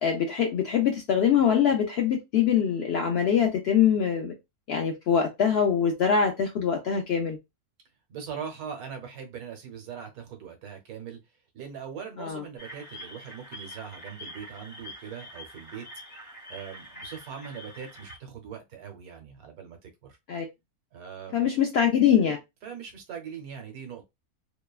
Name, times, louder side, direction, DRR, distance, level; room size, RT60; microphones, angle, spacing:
voice 1, 0.0-4.3 4.7-7.4 12.2-12.4 20.3-20.5 21.3-22.4, left 8 dB, 75° left, 0.5 m, -23 dB
voice 2, 8.1-11.2 11.5-15.9 16.5-20.2 20.9-21.5 22.6-24.0, right 7 dB, 75° right, 1.3 m, -41 dB
sound 1, 12.6-18.2, equal, 35° left, 0.9 m, -45 dB
2.8 x 2.2 x 2.3 m
omnidirectional pair, 1.6 m